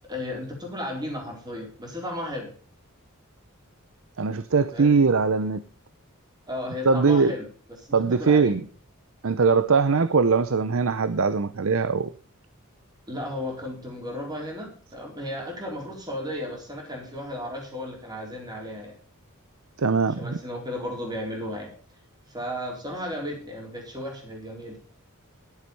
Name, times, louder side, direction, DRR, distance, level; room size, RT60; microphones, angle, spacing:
voice 1, 0.0-2.5 4.7-5.0 6.5-7.4 7.8-8.6 13.1-18.9 20.2-21.7 22.3-24.8, left 1 dB, 20° right, 4.1 m, -34 dB
voice 2, 4.2-5.6 6.9-7.3 7.9-8.6 9.2-12.1 19.8-20.4, right 4 dB, 60° right, 0.6 m, -21 dB
12.0 x 7.9 x 5.4 m
head